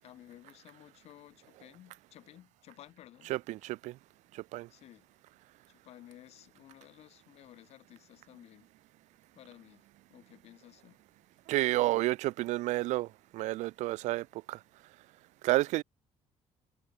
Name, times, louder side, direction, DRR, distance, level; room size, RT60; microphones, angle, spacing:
voice 1, 0.0-3.3 4.7-5.1 5.7-8.7 9.3-11.0, left 13 dB, 60° left, 4.7 m, -55 dB
voice 2, 3.3-4.0 4.3-4.7 11.5-13.1 13.3-14.6 15.4-15.8, right 18 dB, 75° right, 0.5 m, -30 dB
cardioid pair, 175°, 12 cm